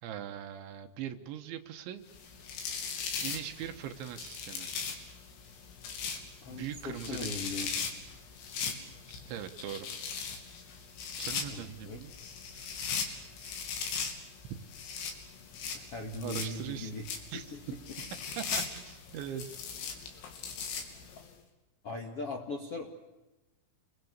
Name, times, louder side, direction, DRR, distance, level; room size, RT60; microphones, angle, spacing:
voice 1, 0.0-2.0 3.2-4.7 6.5-7.5 9.3-9.9 11.2-12.1 12.5-13.6 14.5-14.6 16.2-17.0 17.3-17.6 18.3-19.6, right 10 dB, 70° right, 7 dB, 3.3 m, -41 dB
sound 1, 2.1-21.3, left 6 dB, 75° left, 5.6 m, -39 dB
voice 2, 6.4-7.7 11.5-12.0 15.9-17.0 17.5-17.6 21.8-22.9, left 2 dB, 50° left, 1 dB, 1.7 m, -39 dB
29.0 x 22.0 x 8.1 m, 1.0 s
omnidirectional pair, 5.9 m